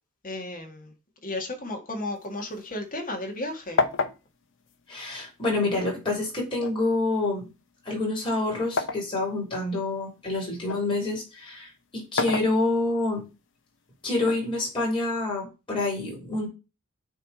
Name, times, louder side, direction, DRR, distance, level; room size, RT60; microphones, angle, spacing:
voice 1, 0.2-0.9 1.2-3.8, left 1 dB, 40° left, 2 dB, 1.9 m, -34 dB
sound 1, 2.1-3.4 3.8-5.7 6.6-9.1 9.6-10.9 11.9-13.1 14.2-15.2, left 4 dB, 60° left, 0.8 m, -31 dB
voice 2, 4.9-7.5 7.9-13.2 14.0-16.5, left 2 dB, 25° left, -2 dB, 3.6 m, -27 dB
9.0 x 3.3 x 4.2 m, 0.28 s
head